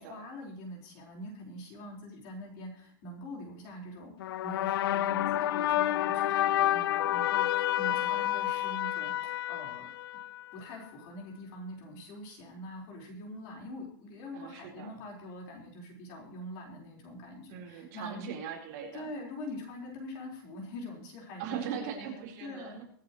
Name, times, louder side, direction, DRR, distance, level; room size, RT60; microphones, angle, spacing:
voice 1, 0.0-9.9 10.5-18.3 18.9-21.9 22.4-22.8, left 1 dB, 35° left, 0 dB, 4.4 m, -44 dB
sound 1, 4.2-10.6, left 13 dB, 85° left, 0.5 m, -29 dB
voice 2, 7.9-8.3 14.3-15.0 17.5-19.1 21.4-22.8, right 7 dB, 45° right, 0 dB, 4.2 m, -40 dB
24.0 x 8.6 x 3.1 m, 0.63 s
supercardioid pair, 175°, 12 cm